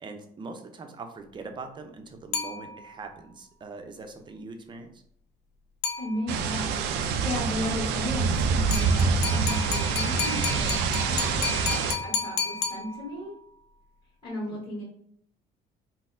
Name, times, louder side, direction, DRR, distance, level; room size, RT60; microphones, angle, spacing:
voice 1, 0.0-5.0 14.4-14.6, right 3 dB, 30° right, 5 dB, 0.5 m, -42 dB
sound 1, 2.3-3.1 5.8-6.6 8.7-13.4, left 6 dB, 85° left, 0.5 m, -32 dB
voice 2, 6.0-6.9 7.2-13.3 14.2-14.8, left 1 dB, 25° left, -10 dB, 1.3 m, -35 dB
sound 2, 6.3-12.0, right 5 dB, 90° right, 0.4 m, -26 dB
4.0 x 2.0 x 2.5 m, 0.66 s
cardioid pair, 110°, 17 cm